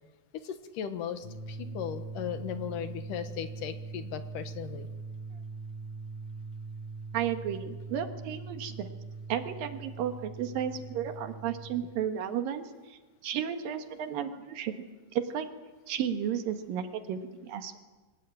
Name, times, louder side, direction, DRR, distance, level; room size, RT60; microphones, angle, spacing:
voice 1, 0.4-4.9, left 9 dB, 70° left, 9 dB, 2.9 m, -37 dB
sound 1, 1.2-11.8, right 4 dB, 40° left, 4.9 m, -42 dB
voice 2, 7.1-8.9 9.3-15.5 15.9-17.8, right 9 dB, 80° right, 6 dB, 3.2 m, -33 dB
24.0 x 19.5 x 8.8 m, 1.2 s
omnidirectional pair, 4.0 m